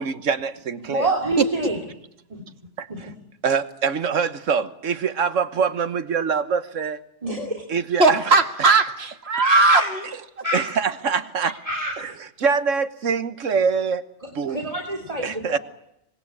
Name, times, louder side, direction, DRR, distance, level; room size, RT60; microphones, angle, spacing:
voice 1, 0.0-1.1 2.8-3.1 3.4-7.0 7.7-8.4 10.5-11.5 12.0-14.0 14.3-14.7 15.2-15.6, right 6 dB, 85° right, 12 dB, 1.5 m, -24 dB
voice 2, 0.8-1.8 2.3-2.4 2.9-3.0 7.2-7.5 9.4-9.9 10.4-10.6 11.7-11.9 14.5-15.6, right 1 dB, 30° right, 3 dB, 3.0 m, -26 dB
voice 3, 8.0-10.0, right 3 dB, 55° right, 7 dB, 1.9 m, -18 dB
25.0 x 20.0 x 8.5 m, 0.82 s
omnidirectional pair, 1.3 m